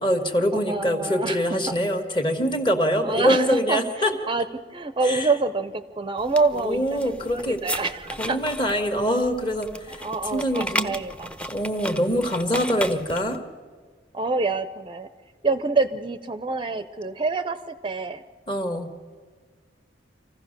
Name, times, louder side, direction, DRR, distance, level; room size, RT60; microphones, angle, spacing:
voice 1, 0.0-4.1 5.0-5.3 6.6-7.6 8.2-10.0 10.3-10.9 11.5-13.4 18.5-18.9, equal, 25° left, 7 dB, 1.8 m, -24 dB
voice 2, 0.5-1.6 3.0-8.4 9.9-11.3 14.1-15.1 15.4-18.2, right 3 dB, 25° right, 11 dB, 0.6 m, -27 dB
sound 1, 6.2-13.4, equal, 5° left, 0.9 m, -35 dB
26.5 x 15.5 x 6.7 m, 1.5 s
head